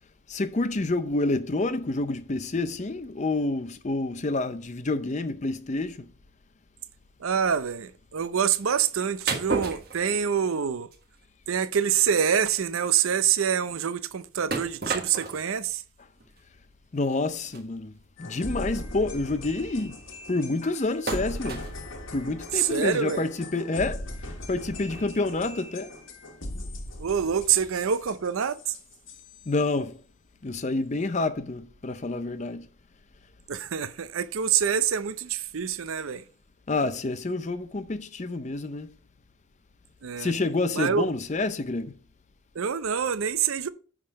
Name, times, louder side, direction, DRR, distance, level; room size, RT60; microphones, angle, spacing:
voice 1, 0.3-6.1 16.9-17.9 18.2-20.0 20.3-21.7 22.1-24.0 24.5-25.9 29.5-30.0 30.4-32.6 36.7-38.9 40.2-41.9, left 2 dB, 35° left, 0.5 m, -28 dB
voice 2, 7.2-10.9 11.5-15.8 22.5-23.2 27.0-28.6 33.5-36.2 40.0-40.3 40.7-41.1 42.5-43.7, right 8 dB, 75° right, 0.5 m, -26 dB
sound 1, 9.3-10.6 10.9-11.1 11.5-11.6 12.1-12.2 12.4-12.6 14.5-15.5 16.2-16.3 17.4-17.6 18.4-18.5 18.8-19.0 21.1-21.8, right 4 dB, 45° right, 1.3 m, -32 dB
sound 2, 18.2-29.5, left 1 dB, 65° left, 1.4 m, -39 dB
9.8 x 3.8 x 5.1 m
head